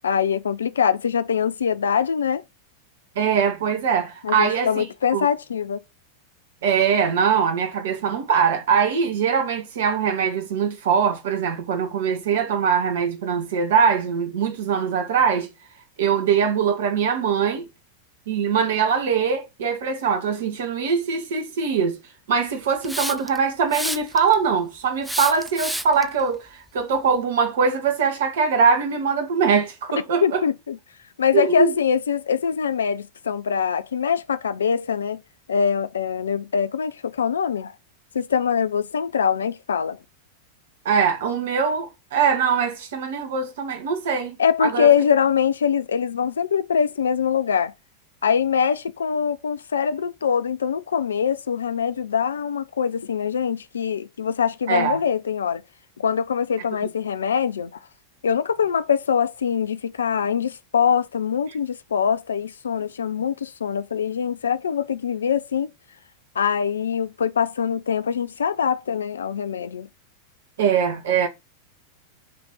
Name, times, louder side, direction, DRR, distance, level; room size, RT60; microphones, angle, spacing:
voice 1, 0.0-2.4 4.2-5.8 30.2-30.8 31.2-35.2 35.5-37.7 38.1-40.0 44.4-47.7 48.2-55.6 56.0-57.7 58.2-65.7 66.3-69.9, left 7 dB, 70° left, 0.5 m, -23 dB
voice 2, 3.1-4.8 5.1-5.3 6.6-15.5 16.0-17.6 18.3-22.0 22.3-30.4 31.3-31.7 40.8-44.3 44.6-44.9 54.7-55.0 70.6-71.3, right 6 dB, 60° right, 1.7 m, -22 dB
Hiss, 22.8-23.4 23.7-24.3 25.0-26.0, right 1 dB, ahead, 0.6 m, -29 dB
8.4 x 3.4 x 5.5 m
figure-of-eight pair, 90°, 0 cm